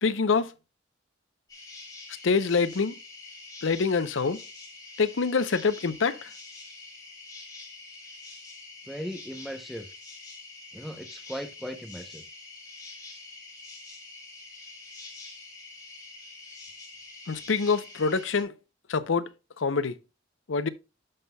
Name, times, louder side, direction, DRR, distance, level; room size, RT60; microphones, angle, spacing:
voice 1, 0.0-0.5 2.2-3.0 3.6-4.4 5.0-6.3 17.3-18.5 18.9-19.3 19.6-20.0 20.5-20.7, left 4 dB, 75° left, 0.6 m, -25 dB
sound 1, 1.5-18.4, left 3 dB, 20° left, 2.3 m, -46 dB
voice 2, 8.9-9.9 10.7-12.2, equal, ahead, 0.7 m, -38 dB
12.0 x 5.5 x 2.3 m
head